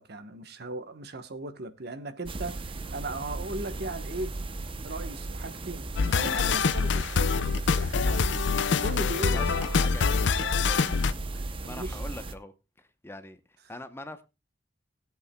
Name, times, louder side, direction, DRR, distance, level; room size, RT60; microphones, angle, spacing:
voice 1, 0.0-4.4 4.8-7.4 7.7-8.4 8.8-9.8 11.4-12.0, right 2 dB, 60° right, 1.1 m, -38 dB
sound 1, 2.3-12.4, right 2 dB, 30° right, 0.7 m, -36 dB
sound 2, 6.0-11.1, left 5 dB, 70° left, 0.5 m, -25 dB
voice 2, 9.2-11.0 11.3-13.4 13.7-14.2, left 1 dB, 15° left, 0.8 m, -43 dB
20.0 x 8.3 x 2.2 m
head